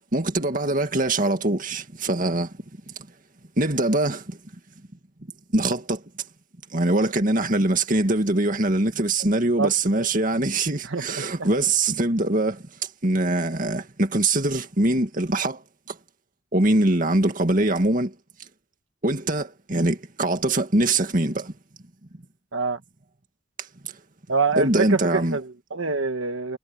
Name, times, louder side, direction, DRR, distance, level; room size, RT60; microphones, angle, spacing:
voice 1, 0.1-2.5 3.6-4.4 5.5-6.0 6.7-12.7 13.0-15.6 15.9-16.0 16.5-18.1 19.0-21.5 24.6-25.4, right 2 dB, 40° right, 2.1 m, -23 dB
voice 2, 10.8-11.5 22.5-22.8 24.3-26.6, right 4 dB, 75° right, 1.4 m, -26 dB
head